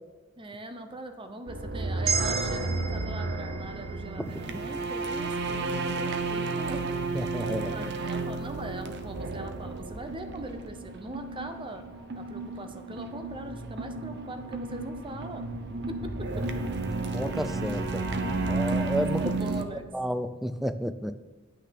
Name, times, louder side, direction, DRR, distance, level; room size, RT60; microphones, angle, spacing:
voice 1, 0.4-6.9 7.4-11.8 12.2-15.5 15.9-16.5 16.9-17.0 19.0-19.9, right 2 dB, 25° right, 7 dB, 0.8 m, -41 dB
sound 1, 1.5-19.6, right 3 dB, 60° right, 0.8 m, -32 dB
sound 2, 2.1-6.3, right 6 dB, 90° right, 0.9 m, -35 dB
voice 2, 7.1-7.9 17.1-18.0 18.5-19.2 19.9-21.2, equal, ahead, 11 dB, 0.3 m, -31 dB
10.0 x 6.1 x 5.9 m, 1.3 s
head